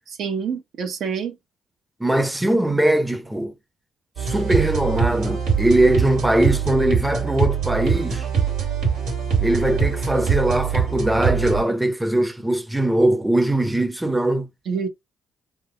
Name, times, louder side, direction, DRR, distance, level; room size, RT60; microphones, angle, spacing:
voice 1, 0.2-1.4 14.7-14.9, right 6 dB, 70° right, 0.8 m, -26 dB
voice 2, 2.0-3.5 4.2-8.3 9.4-14.5, right 1 dB, 5° right, 0.6 m, -21 dB
Sounds & House - Loop mode, 4.2-11.6, right 7 dB, 90° right, 1.6 m, -23 dB
3.5 x 2.0 x 3.7 m
cardioid pair, 90°, 0 cm